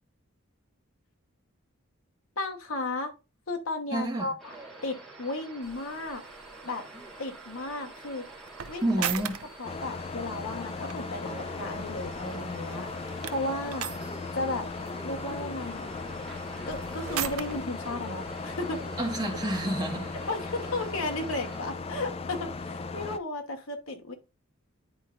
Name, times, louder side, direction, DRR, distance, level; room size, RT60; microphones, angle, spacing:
voice 1, 2.4-3.1 3.5-4.5 4.8-6.2 6.6-6.8 7.2-8.3 8.7-9.1 9.6-12.9 13.3-13.9 14.3-14.7 15.0-16.0 16.7-18.8 20.3-24.1, left 2 dB, 70° left, 1.1 m, -34 dB
voice 2, 3.9-4.3 8.8-9.4 19.0-20.2, right 1 dB, 20° right, 1.6 m, -29 dB
sound 1, 4.4-21.6, right 2 dB, ahead, 2.2 m, -46 dB
sound 2, 5.6-21.1, right 9 dB, 85° right, 0.5 m, -42 dB
sound 3, 9.6-23.2, left 4 dB, 25° left, 0.3 m, -37 dB
9.6 x 4.3 x 2.5 m
head